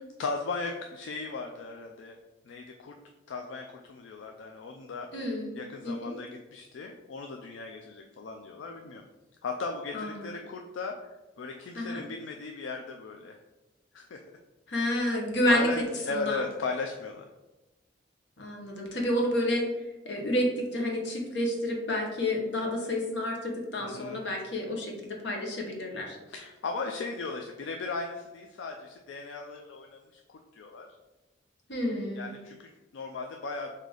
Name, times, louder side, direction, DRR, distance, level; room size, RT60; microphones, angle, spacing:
voice 1, 0.2-2.2 2.5-3.0 3.3-9.0 9.4-13.4 13.9-14.2 15.5-17.3 23.8-24.2 26.3-30.9 32.1-33.8, left 3 dB, 90° left, 3 dB, 0.4 m, -37 dB
voice 2, 5.1-5.6 5.8-6.2 9.9-10.3 11.7-12.0 14.7-15.7 16.1-16.5 18.4-19.7 20.0-26.2 31.7-32.3, left 1 dB, 70° left, 0 dB, 1.0 m, -30 dB
3.9 x 2.7 x 4.8 m, 1.1 s
head